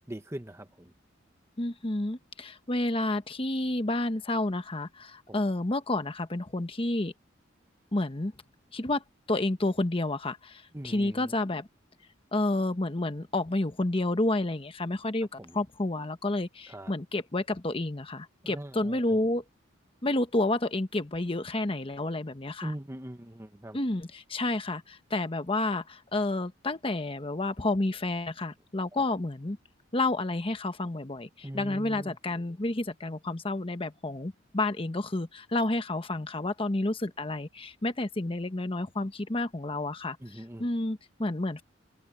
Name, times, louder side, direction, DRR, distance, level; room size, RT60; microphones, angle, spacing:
voice 1, 0.1-0.9 5.3-5.4 10.7-11.4 15.4-15.6 16.7-16.9 18.4-19.2 22.6-23.8 28.9-29.0 31.4-32.2 40.2-40.7, right 1 dB, 15° right, 1.1 m, -41 dB
voice 2, 1.6-7.1 7.9-8.3 8.7-11.7 12.3-19.4 20.0-22.7 23.7-29.6 29.9-41.6, left 2 dB, 30° left, 1.1 m, -30 dB
head